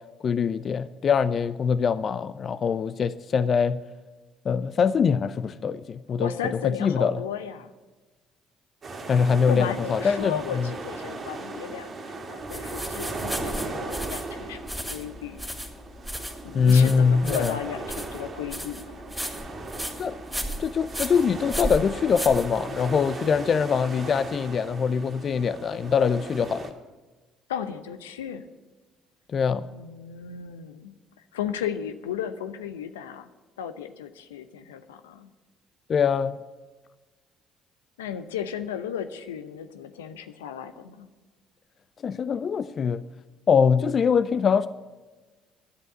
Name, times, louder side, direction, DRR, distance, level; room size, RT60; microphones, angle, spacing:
voice 1, 0.2-3.8 4.4-6.3 6.6-7.2 9.1-10.7 16.5-17.5 20.0-20.2 20.6-26.6 29.3-29.7 35.9-36.4 42.0-43.0 43.5-44.7, left 6 dB, 45° left, 14 dB, 0.5 m, -23 dB
voice 2, 6.2-7.7 9.4-15.4 16.4-19.0 27.5-28.4 29.7-30.9 31.3-33.3 33.6-35.3 38.0-41.1, left 8 dB, 85° left, 10 dB, 0.8 m, -34 dB
sound 1, 8.8-26.7, right 3 dB, 45° right, 2.1 m, -37 dB
sound 2, 12.5-23.0, equal, 5° right, 3.0 m, -35 dB
11.5 x 7.8 x 9.7 m, 1.3 s
hypercardioid pair, 55°, 0 cm